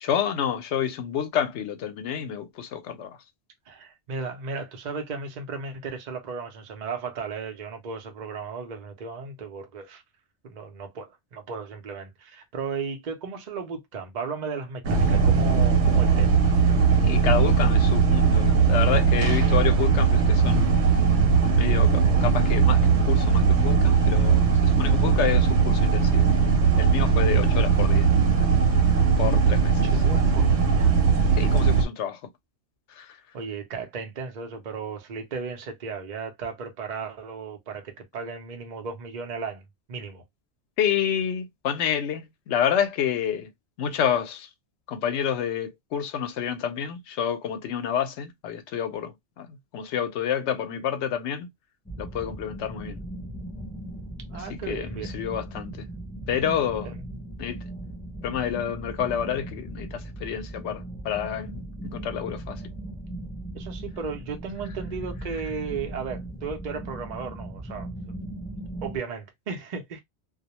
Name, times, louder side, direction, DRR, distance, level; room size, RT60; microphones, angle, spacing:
voice 1, 0.0-3.2 17.0-20.8 21.6-26.3 26.8-28.1 29.2-30.0 31.3-32.3 32.9-33.2 40.8-43.5 43.8-44.5 44.9-51.5 52.0-53.0 54.3-55.9 56.3-56.9 57.4-57.6 58.2-62.7, left 9 dB, 85° left, 0.9 m, -29 dB
voice 2, 3.7-10.0 10.4-16.4 29.8-30.9 33.3-40.2 54.3-55.1 56.8-56.9 63.5-67.9 68.5-70.0, right 5 dB, 50° right, 0.7 m, -35 dB
sound 1, 14.8-31.8, right 5 dB, 90° right, 0.9 m, -19 dB
sound 2, 51.9-69.0, right 1 dB, 10° left, 0.4 m, -38 dB
2.2 x 2.1 x 2.8 m
omnidirectional pair, 1.1 m